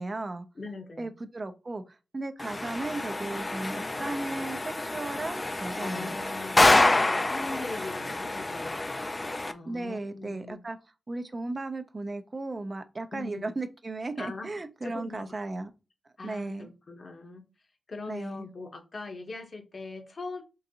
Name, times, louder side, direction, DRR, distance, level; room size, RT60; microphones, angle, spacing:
voice 1, 0.0-0.5 1.0-6.1 9.7-10.8 11.1-15.7 16.2-16.7 18.1-18.5, right 2 dB, 40° right, 0.5 m, -35 dB
voice 2, 0.6-1.1 5.8-8.8 9.5-10.6 13.1-13.5 14.2-14.5 14.8-15.4 16.2-17.4 17.9-20.4, left 3 dB, 50° left, 0.8 m, -41 dB
sound 1, 2.4-9.5, left 2 dB, 30° left, 0.3 m, -27 dB
3.7 x 2.5 x 2.8 m
cardioid pair, 55°, 0 cm